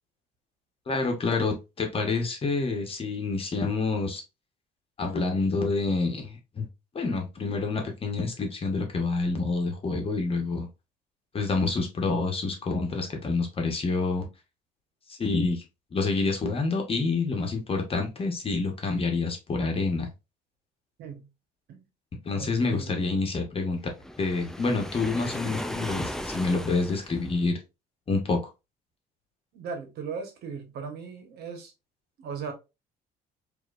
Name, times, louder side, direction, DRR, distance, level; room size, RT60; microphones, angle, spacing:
voice 1, 0.9-4.2 5.0-6.7 6.9-10.7 11.3-14.3 15.1-15.6 15.9-20.1 22.2-23.8 24.2-27.6 28.1-28.4, left 3 dB, 35° left, 1.3 m, -27 dB
voice 2, 22.3-23.0 29.5-31.7 32.2-32.5, right 6 dB, 70° right, 1.3 m, -37 dB
Waves surf, 24.0-27.5, left 1 dB, 5° left, 0.4 m, -36 dB
4.7 x 2.9 x 2.5 m
cardioid pair, 110°, 17 cm